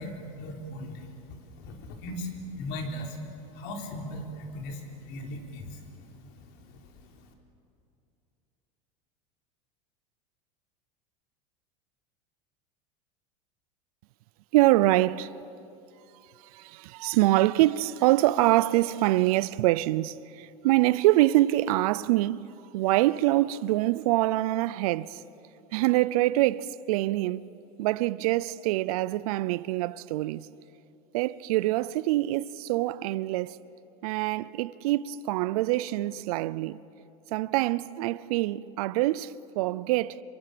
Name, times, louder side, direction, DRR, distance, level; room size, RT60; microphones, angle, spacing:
voice 1, 0.0-3.2 3.5-6.8, left 1 dB, 60° left, 4.5 m, -39 dB
voice 2, 14.5-15.3 16.5-22.5 22.7-25.2 25.7-27.5 27.8-30.5 31.1-33.6 34.0-36.8 37.3-40.2, right 17 dB, 75° right, 0.6 m, -25 dB
27.5 x 23.5 x 7.0 m
supercardioid pair, 105°, 19 cm